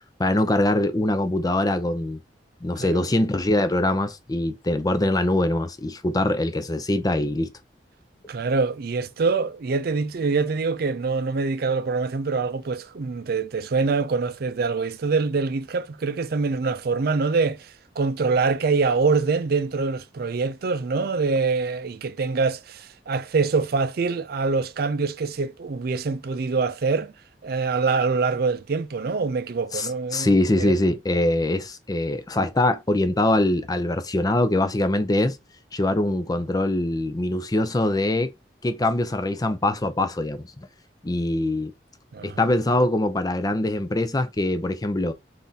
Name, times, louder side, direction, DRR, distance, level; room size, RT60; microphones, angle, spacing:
voice 1, 0.2-2.2 2.6-7.5 29.7-35.4 35.7-38.3 38.6-40.7 41.0-41.7 42.2-45.1, left 1 dB, 20° left, 0.5 m, -23 dB
voice 2, 8.3-27.1 27.4-30.7 42.1-42.5, right 4 dB, 60° right, 0.5 m, -25 dB
3.5 x 2.6 x 4.0 m
head